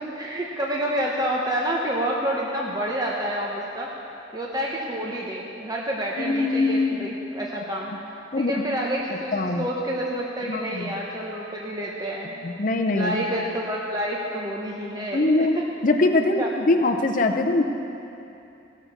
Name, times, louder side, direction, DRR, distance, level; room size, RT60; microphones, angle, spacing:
voice 1, 0.0-3.9 4.3-7.9 8.3-12.4 12.9-15.5 16.4-16.5, right 1 dB, 20° right, -3 dB, 0.9 m, -28 dB
voice 2, 6.2-7.1 8.3-8.5 9.3-9.7 10.5-10.9 12.4-13.3 15.1-15.6 15.8-17.6, left 2 dB, 45° left, 4 dB, 0.6 m, -22 dB
17.5 x 6.7 x 6.0 m, 2.8 s
head